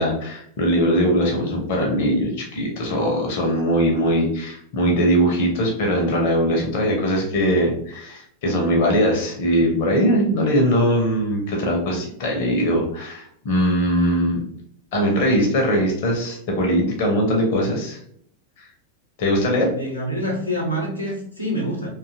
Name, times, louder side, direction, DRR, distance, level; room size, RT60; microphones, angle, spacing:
voice 1, 0.0-14.4 14.9-18.0 18.6-18.7 19.2-19.7, equal, 50° left, 0 dB, 0.6 m, -21 dB
voice 2, 19.7-21.9, equal, 90° left, -1 dB, 0.7 m, -26 dB
2.6 x 2.3 x 2.5 m, 0.68 s
figure-of-eight pair, 90°, 0 cm